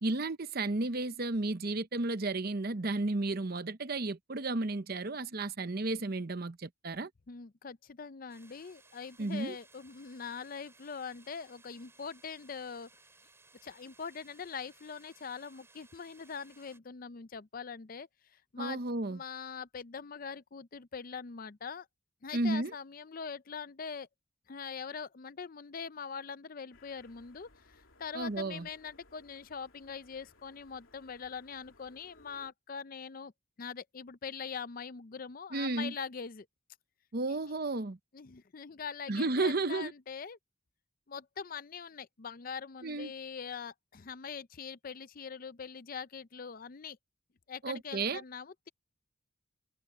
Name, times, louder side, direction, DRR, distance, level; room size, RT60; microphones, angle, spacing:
voice 1, 0.0-7.1 9.2-9.6 18.6-19.2 22.3-22.7 28.1-28.7 35.5-35.9 37.1-38.0 39.1-39.9 42.8-43.1 47.6-48.2, right 2 dB, 45° right, 0.8 m, -33 dB
voice 2, 7.3-12.9 13.6-18.8 19.1-21.9 22.2-24.1 24.5-33.3 33.6-36.5 37.3-37.4 38.1-40.4 41.1-47.0 47.5-48.7, left 6 dB, 45° left, 0.5 m, -43 dB
sound 1, 8.3-16.8, right 3 dB, 10° right, 6.1 m, -62 dB
sound 2, 26.7-32.5, left 2 dB, 75° left, 3.1 m, -63 dB
open air
head